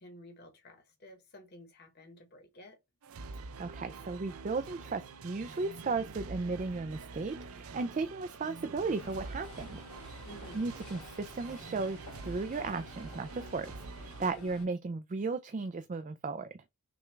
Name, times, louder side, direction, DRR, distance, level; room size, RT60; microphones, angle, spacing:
voice 1, 0.0-2.8 10.2-10.7 14.2-14.6, left 1 dB, 45° left, 1.0 m, -53 dB
sound 1, 3.0-14.3, right 3 dB, 80° right, 0.6 m, -46 dB
voice 2, 3.6-10.3 10.5-12.0 12.2-16.6, right 4 dB, 35° right, 0.3 m, -35 dB
sound 2, 9.0-14.7, left 1 dB, 85° left, 1.7 m, -51 dB
6.0 x 2.3 x 3.3 m
head